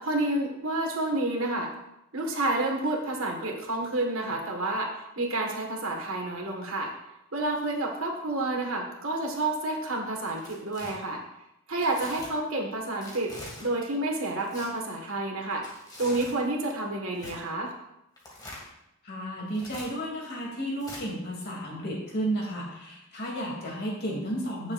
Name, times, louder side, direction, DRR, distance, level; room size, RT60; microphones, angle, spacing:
voice 1, 0.0-1.7 2.1-6.9 7.3-11.2 11.7-13.3 13.6-15.6 16.0-17.7, right 2 dB, 70° right, 1 dB, 1.9 m, -29 dB
Tearing, 10.2-10.9 11.8-12.3 13.0-13.7 14.4-14.7 15.5-16.4 17.1-17.4 18.2-18.7 19.5-19.9 20.8-21.0, left 1 dB, 20° left, 2.3 m, -44 dB
voice 2, 19.0-24.7, right 1 dB, 45° left, -2 dB, 3.1 m, -33 dB
16.0 x 7.3 x 2.7 m, 0.86 s
head